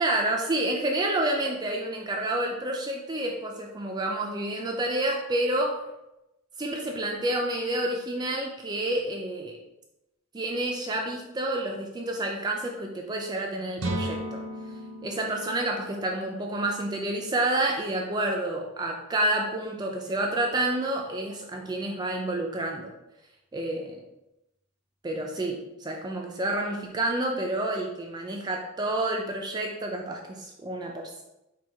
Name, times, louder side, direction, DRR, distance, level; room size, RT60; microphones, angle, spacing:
voice 1, 0.0-5.8 6.6-9.5 10.3-14.4 15.0-22.9 23.5-24.0 25.0-31.2, right 1 dB, 20° right, 0 dB, 0.4 m, -29 dB
sound 1, 13.8-17.6, right 1 dB, 80° right, 0.7 m, -36 dB
4.4 x 2.3 x 4.5 m, 0.93 s
head